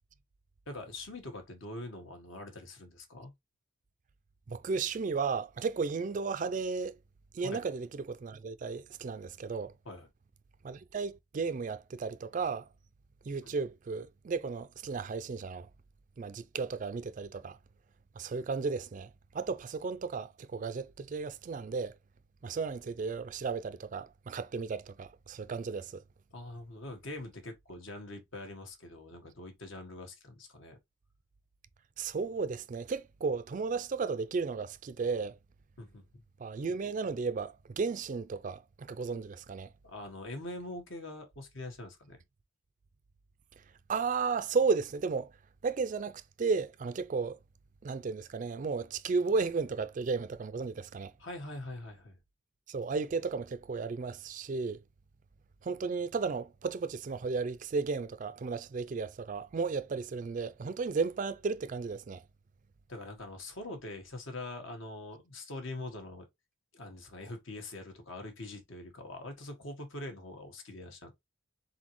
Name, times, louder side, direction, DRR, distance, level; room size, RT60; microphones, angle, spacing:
voice 1, 0.7-3.3 7.4-7.7 9.8-10.1 13.4-13.5 26.3-30.8 35.8-36.2 39.8-42.2 51.2-52.2 62.9-66.2 66.7-71.1, left 2 dB, 70° left, 1.4 m, -43 dB
voice 2, 4.5-6.9 7.3-9.7 10.6-12.6 13.3-15.7 16.2-17.6 18.2-19.1 19.3-21.9 22.4-26.0 32.0-35.4 36.4-39.7 43.9-45.3 45.6-47.4 47.8-51.1 52.7-54.8 55.6-62.2, right 4 dB, 40° right, 0.3 m, -34 dB
4.1 x 4.0 x 3.0 m
head